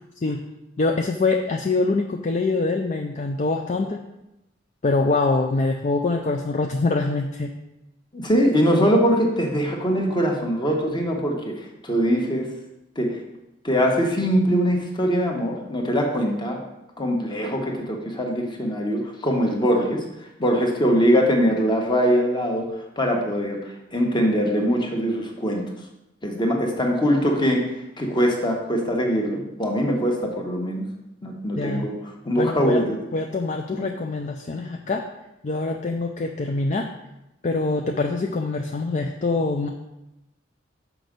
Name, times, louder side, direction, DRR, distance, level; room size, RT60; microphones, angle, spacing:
voice 1, 0.8-4.0 4.8-7.5 31.6-31.9 32.3-32.8 33.1-35.0 35.4-36.9 37.4-39.7, left 3 dB, 40° left, 3 dB, 0.5 m, -24 dB
voice 2, 8.1-12.5 12.9-13.2 13.6-16.6 17.0-20.1 20.4-25.7 26.2-32.0 32.2-33.0 33.7-33.9, equal, 25° left, 1 dB, 1.3 m, -22 dB
6.1 x 6.1 x 5.2 m, 0.92 s
head